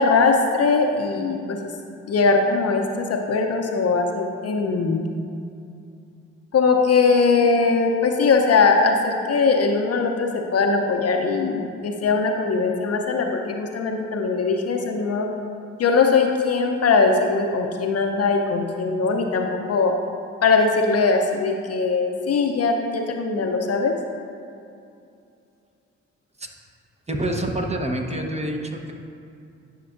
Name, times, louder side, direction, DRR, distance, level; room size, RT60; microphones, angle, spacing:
voice 1, 0.0-1.6 2.1-5.0 6.5-15.3 15.8-19.9 20.4-23.9, left 4 dB, 50° left, 3 dB, 0.7 m, -20 dB
voice 2, 27.1-28.9, right 1 dB, 20° right, 2 dB, 1.0 m, -27 dB
10.5 x 5.8 x 2.6 m, 2.6 s
hypercardioid pair, 45°, 33 cm